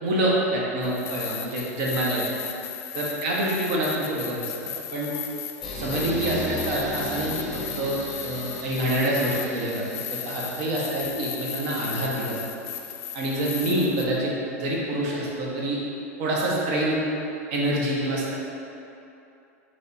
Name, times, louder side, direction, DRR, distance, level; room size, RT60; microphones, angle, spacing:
voice 1, 0.0-2.3 2.9-4.5 4.9-5.1 5.8-7.3 7.8-9.8 10.1-12.4 13.1-15.8 16.2-17.0 17.5-18.4, right 1 dB, 60° right, -4 dB, 1.0 m, -26 dB
sound 1, 0.8-14.1, left 9 dB, 65° left, 0.5 m, -36 dB
sound 2, 5.6-10.6, left 1 dB, ahead, 1.0 m, -36 dB
3.4 x 3.3 x 4.1 m, 2.8 s
hypercardioid pair, 100°, 8 cm